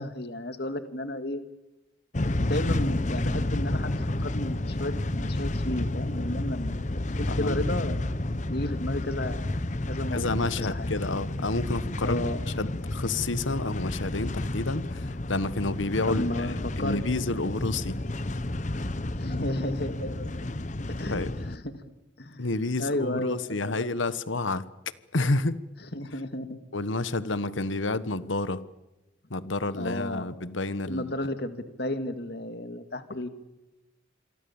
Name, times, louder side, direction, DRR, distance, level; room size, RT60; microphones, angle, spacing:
voice 1, 0.0-1.4 2.4-8.0 8.5-9.5 9.9-10.2 10.6-10.9 12.0-12.4 16.1-17.0 19.2-20.3 21.0-21.8 22.2-22.5 22.8-23.4 23.6-23.7 25.9-26.6 29.8-30.3 30.9-33.3, left 1 dB, 55° left, 10 dB, 1.9 m, -33 dB
sound 1, 2.1-21.6, left 1 dB, 40° left, 1.0 m, -31 dB
voice 2, 10.1-12.2 12.6-16.5 16.8-18.0 21.1-21.3 22.4-24.7 25.1-25.6 26.7-28.6 29.3-31.1, left 2 dB, 80° left, 15 dB, 1.3 m, -29 dB
27.5 x 23.0 x 7.1 m, 1.0 s
head